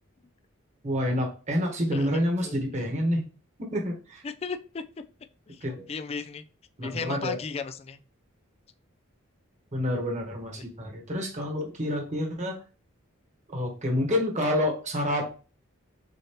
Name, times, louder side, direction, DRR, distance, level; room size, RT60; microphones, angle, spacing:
voice 1, 0.8-3.2 3.7-4.2 5.6-5.8 6.8-7.4 9.7-12.6 13.5-15.2, left 1 dB, 35° right, 1.2 m, -28 dB
voice 2, 1.9-3.1 4.2-4.8 5.5-6.4 6.8-8.0 10.6-10.7, left 5 dB, 30° left, 0.3 m, -36 dB
6.5 x 2.8 x 2.9 m
head